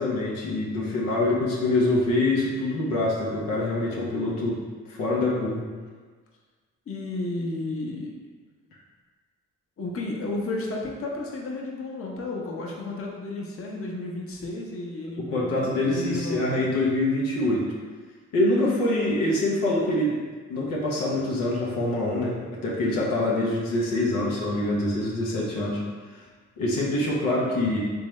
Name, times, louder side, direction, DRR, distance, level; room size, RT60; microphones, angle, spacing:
voice 1, 0.0-4.6 4.9-5.6 15.2-17.6 18.3-20.1 20.5-25.8 26.6-27.8, left 2 dB, 90° left, -4 dB, 0.7 m, -25 dB
voice 2, 6.9-8.1 9.8-16.7, left 2 dB, 45° left, -2 dB, 0.8 m, -32 dB
3.5 x 2.7 x 3.1 m, 1.5 s
supercardioid pair, 55°, 32 cm